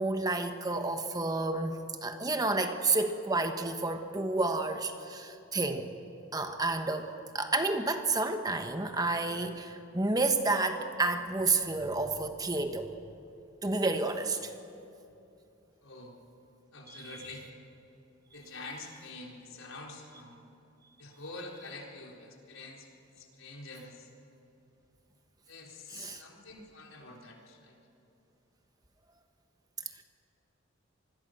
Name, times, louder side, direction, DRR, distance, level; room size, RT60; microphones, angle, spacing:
voice 1, 0.0-5.9 6.3-7.1 7.3-12.9 13.6-14.5 16.9-17.4 25.9-26.2, right 3 dB, 20° right, 6 dB, 1.2 m, -30 dB
voice 2, 15.8-16.2 16.7-17.5 18.3-20.5 21.0-24.1 25.5-27.8, left 2 dB, 85° left, 0 dB, 4.1 m, -46 dB
26.5 x 21.0 x 6.6 m, 2.9 s
head